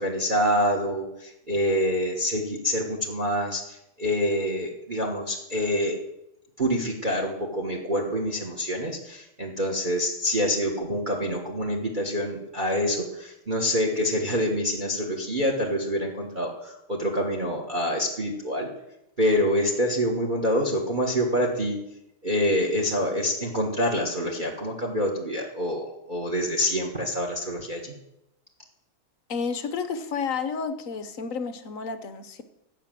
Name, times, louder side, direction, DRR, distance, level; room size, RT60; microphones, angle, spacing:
voice 1, 0.0-6.0 6.6-18.7 19.2-21.8 22.2-27.9, equal, 25° right, 2 dB, 1.4 m, -26 dB
voice 2, 29.3-32.4, left 5 dB, 65° left, 10 dB, 0.8 m, -31 dB
16.0 x 5.9 x 7.6 m, 0.85 s
omnidirectional pair, 2.3 m